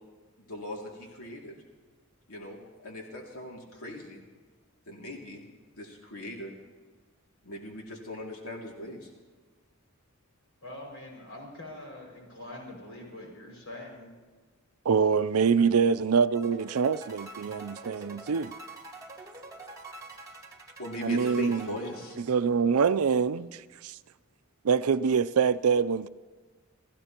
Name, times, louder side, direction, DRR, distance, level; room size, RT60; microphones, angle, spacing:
voice 1, 0.5-1.5 2.3-4.2 4.9-5.4 5.7-6.5 7.4-9.1 20.8-22.2, left 1 dB, 85° left, 2.5 m, -39 dB
voice 2, 10.6-14.1, left 1 dB, 70° left, 5.9 m, -44 dB
voice 3, 14.9-18.5 21.0-21.7 22.3-23.9 24.6-26.1, right 6 dB, 90° right, 0.5 m, -25 dB
sound 1, 16.3-22.6, right 2 dB, 15° right, 2.1 m, -46 dB
28.5 x 15.5 x 3.0 m
head